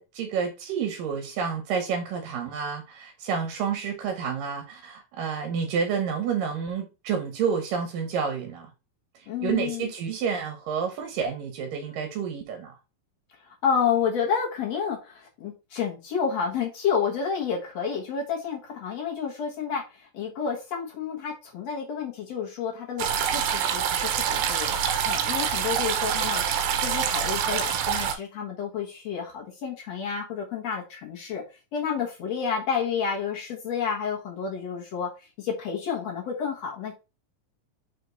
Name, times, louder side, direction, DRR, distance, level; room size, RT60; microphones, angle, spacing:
voice 1, 0.0-8.7 9.4-12.8, right 6 dB, 75° right, 2.7 m, -29 dB
voice 2, 9.3-9.9 13.4-24.8 25.0-31.4 31.7-35.1 35.4-36.9, left 6 dB, 60° left, 2.0 m, -30 dB
sound 1, 23.0-28.2, right 8 dB, 90° right, 2.7 m, -26 dB
5.9 x 4.5 x 4.0 m
omnidirectional pair, 4.1 m